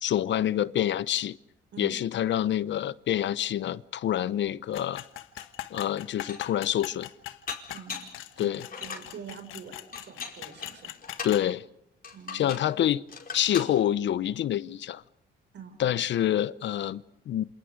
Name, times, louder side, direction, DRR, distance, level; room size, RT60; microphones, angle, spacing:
voice 1, 0.0-1.4 1.8-5.0 5.7-7.1 8.4-8.7 11.2-11.6 12.3-13.0 13.3-15.0 15.8-17.4, left 11 dB, 65° left, 0.8 m, -27 dB
sound 1, 4.7-11.5, left 14 dB, 90° left, 1.4 m, -41 dB
Dishes pots and pans, 5.4-5.5 6.0-6.6 7.5-8.2 8.6-9.1 9.9-11.4 12.0-12.7 13.1-13.7, left 5 dB, 45° left, 5.0 m, -40 dB
voice 2, 7.7-8.0 8.4-10.9 12.1-12.9 15.5-15.8, right 6 dB, 65° right, 5.7 m, -45 dB
28.5 x 27.0 x 5.0 m
cardioid pair, 90°, 20 cm